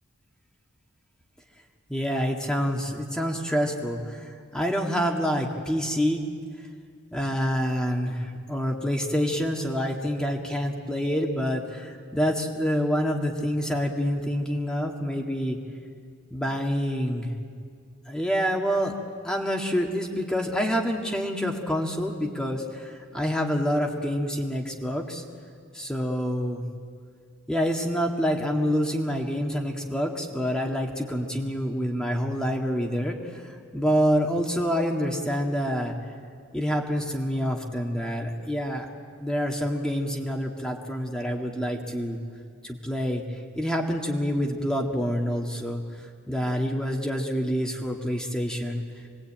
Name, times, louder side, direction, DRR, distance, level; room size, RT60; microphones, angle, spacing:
voice 1, 1.9-6.3 7.1-15.6 16.3-17.3 18.1-18.9 19.2-25.2 25.7-26.6 27.5-35.9 36.5-38.9 39.2-42.2 42.6-45.8 46.3-48.8, equal, 5° left, 0 dB, 2.0 m, -27 dB
27.0 x 21.5 x 8.9 m, 2.1 s
head